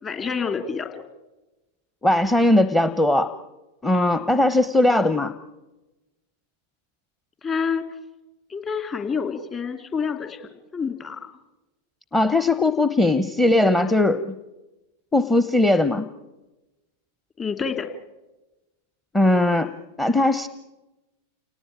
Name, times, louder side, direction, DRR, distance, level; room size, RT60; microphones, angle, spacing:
voice 1, 0.0-1.0 7.4-7.9 8.5-11.4 17.4-17.9, left 6 dB, 25° left, 7 dB, 2.9 m, -28 dB
voice 2, 2.0-3.3 3.8-5.3 12.1-14.4 15.1-16.1 19.1-19.7 20.0-20.5, left 2 dB, 10° left, 11 dB, 0.9 m, -19 dB
29.0 x 19.0 x 8.8 m, 1.1 s
figure-of-eight pair, 90°, 0 cm